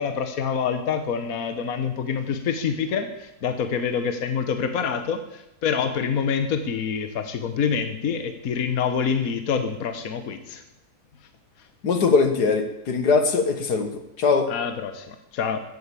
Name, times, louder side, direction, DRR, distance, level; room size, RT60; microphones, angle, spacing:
voice 1, 0.0-10.6 14.5-15.6, left 6 dB, 65° left, 8 dB, 1.5 m, -26 dB
voice 2, 11.8-14.5, left 4 dB, 85° left, 7 dB, 2.1 m, -21 dB
14.5 x 9.4 x 8.4 m, 0.86 s
omnidirectional pair, 1.7 m